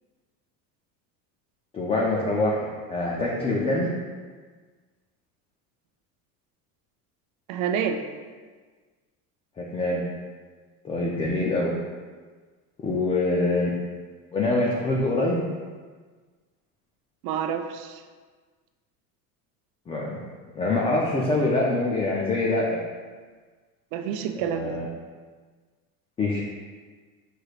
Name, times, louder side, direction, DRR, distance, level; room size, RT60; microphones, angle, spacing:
voice 1, 1.7-3.9 9.6-10.0 10.8-11.8 12.8-13.7 14.3-15.5 19.9-20.2 20.6-22.8 24.4-24.9 26.2-26.4, left 2 dB, 15° left, -3 dB, 0.3 m, -25 dB
voice 2, 7.5-8.0 17.2-18.0 23.9-24.7, right 8 dB, 55° right, 6 dB, 0.5 m, -28 dB
6.2 x 3.2 x 2.4 m, 1.5 s
supercardioid pair, 105°, 45 cm